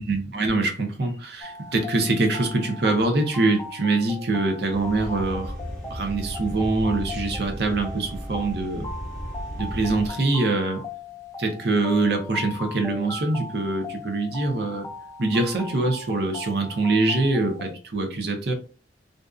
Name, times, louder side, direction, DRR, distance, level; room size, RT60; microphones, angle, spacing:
voice 1, 0.0-5.5 5.9-8.9 9.6-10.8 11.4-14.9 15.2-18.5, right 2 dB, 60° right, 4 dB, 0.6 m, -24 dB
sound 1, 1.4-17.7, left 2 dB, 15° left, 0.3 m, -39 dB
sound 2, 4.7-10.1, equal, ahead, 0.8 m, -35 dB
2.5 x 2.3 x 2.3 m, 0.37 s
head